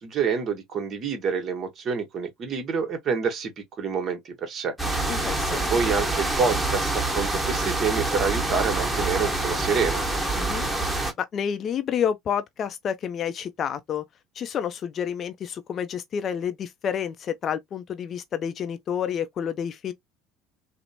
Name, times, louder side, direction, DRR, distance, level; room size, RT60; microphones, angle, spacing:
voice 1, 0.0-3.5 3.8-4.7 5.7-10.0, right 5 dB, 50° right, 1.1 m, -27 dB
sound 1, 4.8-11.1, right 2 dB, 5° right, 1.1 m, -26 dB
voice 2, 5.1-5.7 10.4-10.7 11.2-14.0 14.4-19.9, left 8 dB, 45° left, 0.4 m, -29 dB
2.9 x 2.0 x 2.7 m
hypercardioid pair, 70°, 0 cm